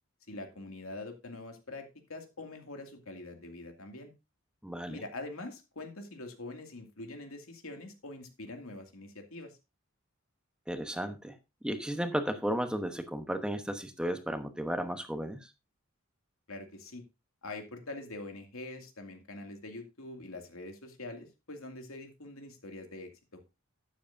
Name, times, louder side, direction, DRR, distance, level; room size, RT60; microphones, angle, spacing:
voice 1, 0.3-4.1 4.9-9.6 16.5-17.0 17.4-23.4, left 2 dB, 85° left, 5 dB, 2.4 m, -44 dB
voice 2, 4.6-5.0 10.7-11.3 11.6-15.5, equal, 5° right, 8 dB, 1.0 m, -34 dB
12.5 x 9.5 x 2.6 m, 0.26 s
head